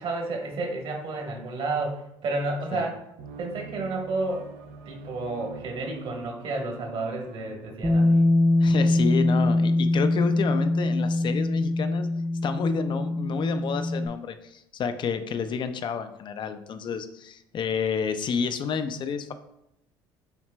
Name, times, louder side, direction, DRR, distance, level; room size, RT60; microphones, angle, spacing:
voice 1, 0.0-3.0 3.4-4.5 4.9-8.2, right 2 dB, 55° right, 2 dB, 1.2 m, -31 dB
sound 1, 3.2-10.5, right 5 dB, 75° right, 0.5 m, -46 dB
Bass guitar, 7.8-14.1, left 2 dB, 15° right, 0.5 m, -23 dB
voice 2, 8.6-12.1 12.4-19.3, left 6 dB, 45° left, 10 dB, 0.5 m, -30 dB
5.8 x 3.2 x 2.2 m, 0.82 s
hypercardioid pair, 70°, 12 cm